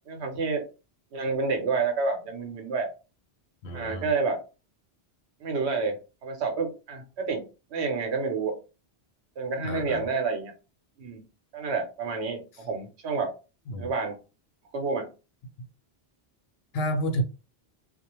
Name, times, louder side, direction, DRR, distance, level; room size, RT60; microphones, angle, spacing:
voice 1, 0.1-0.6 1.1-2.9 3.7-4.4 5.4-7.4 7.7-8.5 9.4-10.5 11.0-11.2 11.5-13.3 13.8-14.2 14.7-15.1, right 4 dB, 80° right, 1.0 m, -29 dB
voice 2, 3.6-4.1 9.6-10.1 13.7-13.9 15.6-15.7 16.7-17.2, equal, 70° left, 0.8 m, -30 dB
2.4 x 2.1 x 2.9 m
omnidirectional pair, 1.1 m